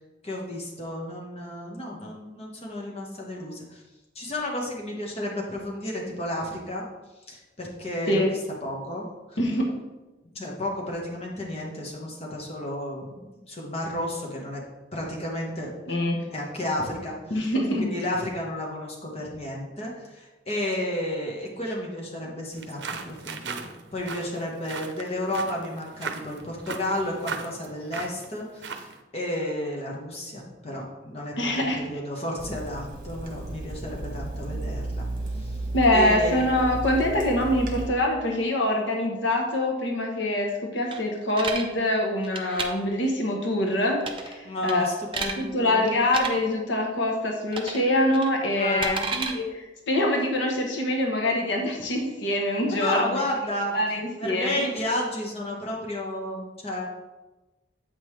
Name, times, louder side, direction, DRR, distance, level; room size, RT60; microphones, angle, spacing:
voice 1, 0.2-3.8 4.1-6.8 7.3-9.1 10.3-14.6 14.9-15.7 16.2-35.1 35.3-35.6 35.9-36.5 44.4-45.9 48.5-49.1 52.7-53.8 54.2-56.9, left 1 dB, 35° left, -2 dB, 1.4 m, -32 dB
voice 2, 9.4-9.7 15.9-16.2 17.3-17.9 31.4-31.8 35.7-44.8 45.2-53.1 53.7-54.6, left 1 dB, 85° left, 1 dB, 1.1 m, -25 dB
sound 1, 22.5-29.0, right 5 dB, 70° right, 0.6 m, -38 dB
Water tap faucet / Sink (filling or washing), 32.4-37.9, right 2 dB, 50° right, 1.1 m, -33 dB
sound 2, 40.9-41.6 42.2-42.7 44.0-44.4 44.7-45.4 46.0-46.3 47.5-47.8 48.1-49.3, right 4 dB, 30° right, 0.6 m, -31 dB
8.1 x 5.5 x 3.2 m, 1.1 s
head